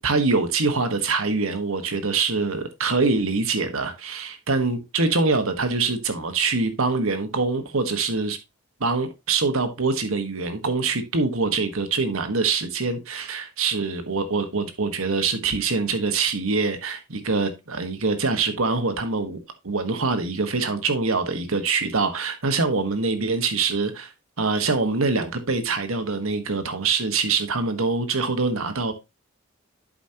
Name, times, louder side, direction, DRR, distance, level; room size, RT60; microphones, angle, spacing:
voice 1, 0.0-8.4 8.8-19.4 19.6-24.1 24.4-28.9, right 4 dB, 80° right, 1.4 m, -24 dB
11.0 x 5.2 x 2.9 m
head